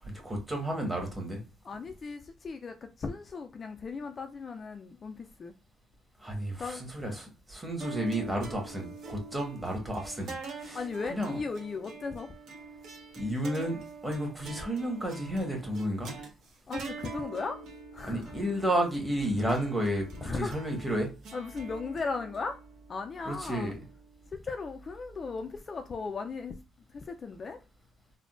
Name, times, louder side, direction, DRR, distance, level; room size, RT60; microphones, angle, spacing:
voice 1, 0.0-1.4 6.2-10.8 11.1-11.4 13.2-16.1 18.0-21.1 23.2-23.7, right 1 dB, 10° right, 1.2 m, -32 dB
voice 2, 1.6-5.5 6.6-6.8 10.7-12.3 16.7-17.6 17.9-18.4 20.2-20.6 21.3-22.6 22.9-23.7 24.3-26.6 26.9-27.6, left 4 dB, 35° left, 0.3 m, -37 dB
sound 1, 7.8-24.3, right 4 dB, 65° right, 1.3 m, -45 dB
3.6 x 2.1 x 2.4 m
cardioid pair, 115°, 0 cm